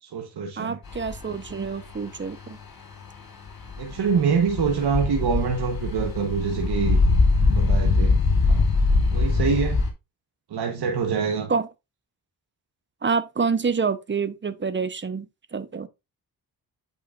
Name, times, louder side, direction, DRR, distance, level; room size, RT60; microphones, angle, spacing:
voice 1, 0.0-0.8 3.8-7.0 7.5-8.2 8.5-8.7 9.1-9.8 10.5-11.5, right 6 dB, 85° right, 1.2 m, -25 dB
voice 2, 0.6-2.6 11.5-11.7 13.0-15.9, right 5 dB, 30° right, 0.8 m, -27 dB
sound 1, 0.9-9.9, left 3 dB, 60° left, 3.0 m, -23 dB
8.7 x 5.6 x 2.5 m
cardioid pair, 90°, 39 cm